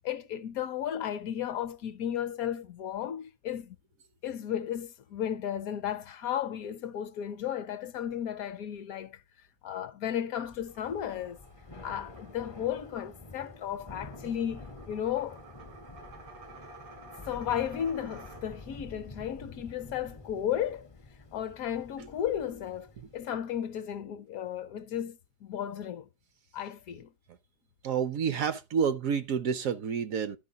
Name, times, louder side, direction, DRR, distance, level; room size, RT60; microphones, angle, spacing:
voice 1, 0.0-3.8 4.2-9.2 9.6-11.4 11.8-15.4 17.3-20.9 21.3-26.1 26.5-27.1, left 10 dB, 70° left, 1.0 m, -34 dB
Thunder / Rain, 10.4-23.3, left 2 dB, 35° left, 0.4 m, -49 dB
sound 1, 10.6-18.9, right 2 dB, 85° right, 3.9 m, -52 dB
voice 2, 27.8-30.4, right 7 dB, 65° right, 0.9 m, -29 dB
12.0 x 4.3 x 3.9 m
omnidirectional pair, 1.7 m